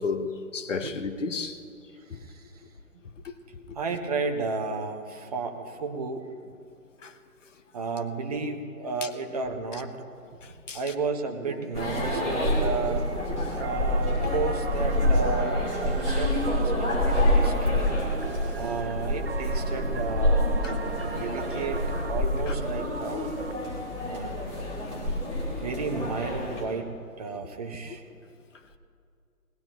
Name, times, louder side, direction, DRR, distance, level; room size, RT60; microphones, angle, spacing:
voice 1, 0.0-1.6 3.2-3.3 7.0-7.1 10.7-10.8 20.6-20.7 22.5-22.6, left 4 dB, 55° left, 1.1 m, -32 dB
voice 2, 2.1-2.4 3.7-6.3 7.7-10.0 10.7-13.1 13.5-17.9 18.5-20.8 21.0-23.3 24.0-24.4 25.5-28.0, right 4 dB, 25° right, 0.8 m, -33 dB
sound 1, 11.7-26.6, left 1 dB, 15° left, 2.4 m, -27 dB
sound 2, 12.2-23.5, right 5 dB, 45° right, 0.5 m, -38 dB
20.0 x 15.5 x 3.0 m
figure-of-eight pair, 145°, 45 cm